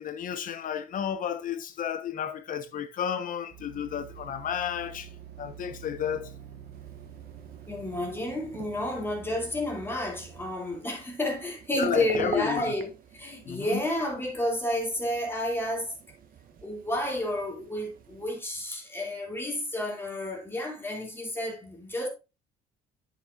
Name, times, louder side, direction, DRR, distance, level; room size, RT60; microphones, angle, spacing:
voice 1, 0.0-5.1 5.4-6.3 11.7-12.7 13.4-13.8, left 9 dB, 55° left, 1.1 m, -32 dB
sound 1, 3.5-10.6, right 8 dB, 75° right, 1.5 m, -47 dB
sound 2, 6.7-18.4, right 6 dB, 60° right, 1.2 m, -44 dB
voice 2, 7.7-15.9 16.6-22.1, left 1 dB, 15° left, 2.6 m, -31 dB
10.0 x 5.9 x 2.5 m
cardioid pair, 110°, 17 cm